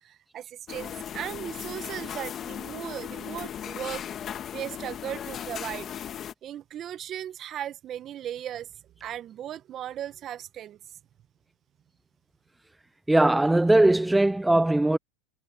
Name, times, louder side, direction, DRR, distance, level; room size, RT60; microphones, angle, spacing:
voice 1, 0.0-4.0 4.5-5.9 6.4-8.7 9.0-10.8, right 11 dB, 35° right, 1.5 m, -37 dB
sound 1, 0.7-6.3, left 9 dB, 35° left, 2.1 m, -37 dB
voice 2, 13.1-15.0, right 1 dB, 5° right, 0.4 m, -20 dB
hypercardioid pair, 105°, 0 cm